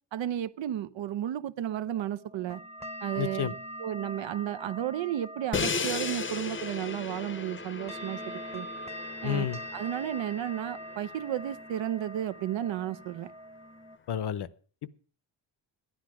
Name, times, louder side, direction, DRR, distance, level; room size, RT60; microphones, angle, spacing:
voice 1, 0.1-2.6 3.0-3.5 3.8-8.7 9.2-9.5 9.7-13.3, right 11 dB, 75° right, 0.7 m, -33 dB
sound 1, 1.7-14.0, equal, 15° right, 0.9 m, -43 dB
voice 2, 3.2-3.5 9.2-9.6 14.1-14.5, left 10 dB, 60° left, 0.8 m, -30 dB
Crash cymbal, 5.5-11.5, left 4 dB, 25° left, 0.7 m, -36 dB
12.5 x 10.5 x 6.0 m
wide cardioid pair, 155°, 46 cm